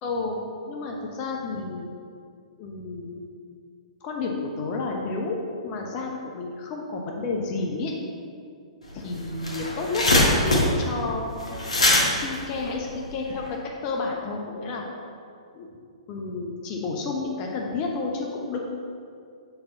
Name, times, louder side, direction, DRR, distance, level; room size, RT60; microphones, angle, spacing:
voice 1, 0.0-1.9 2.6-3.3 4.0-5.4 5.6-8.0 8.9-11.6 12.1-13.6 13.8-14.8 15.5-15.7 16.1-18.6, left 3 dB, 35° left, 0 dB, 0.7 m, -31 dB
sound 1, 8.9-9.0 9.2-13.5, left 1 dB, 80° left, 1.2 m, -22 dB
6.9 x 4.0 x 3.9 m, 2.3 s
figure-of-eight pair, 115°, 3 cm